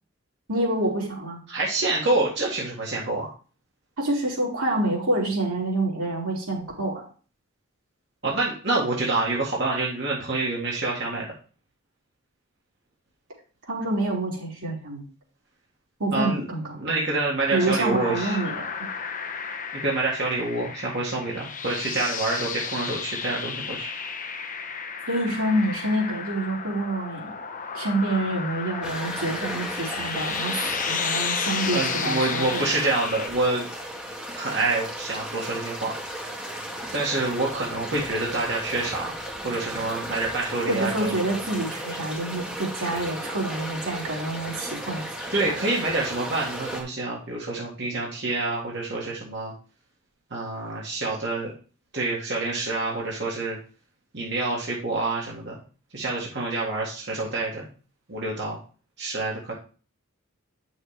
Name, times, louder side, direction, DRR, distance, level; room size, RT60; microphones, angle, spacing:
voice 1, 0.5-1.4 4.0-7.0 13.7-15.0 16.0-16.6 17.5-18.7 25.1-27.3 27.7-32.6 40.7-45.0 45.5-45.6, right 1 dB, 85° right, -3 dB, 3.4 m, -27 dB
voice 2, 1.5-3.3 8.2-11.3 16.1-16.4 16.8-18.4 19.7-23.9 31.7-33.7 34.3-35.9 36.9-39.2 39.4-41.1 45.3-49.5 50.3-51.5 51.9-53.6 54.1-55.5 55.9-57.7 58.1-58.6 59.0-59.5, right 2 dB, 50° right, -4 dB, 1.9 m, -27 dB
sound 1, 17.6-33.3, left 6 dB, 35° left, 0.7 m, -33 dB
sound 2, 28.8-46.8, equal, 5° right, 1.5 m, -35 dB
9.0 x 6.4 x 3.3 m, 0.38 s
head